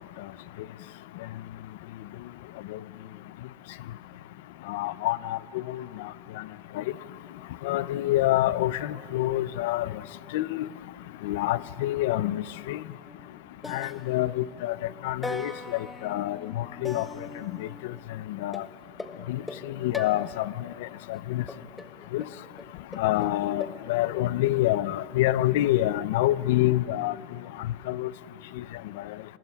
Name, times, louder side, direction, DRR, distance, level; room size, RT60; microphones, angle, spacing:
voice 1, 4.7-5.4 5.7-5.8 6.8-6.9 7.6-9.9 10.3-10.7 11.2-12.8 13.7-14.8 15.0-15.5 16.0-17.1 18.4-18.6 19.3-19.4 19.8-20.5 21.1-21.4 22.1-22.2 23.0-27.1 27.9-28.1, left 15 dB, 80° left, 18 dB, 0.3 m, -26 dB
sound 1, 13.1-13.3 13.6-14.7 15.2-18.0 18.5-20.7 21.5-23.8, left 2 dB, 10° left, 0.6 m, -41 dB
28.5 x 21.5 x 2.3 m, 2.7 s
supercardioid pair, 160°, 0 cm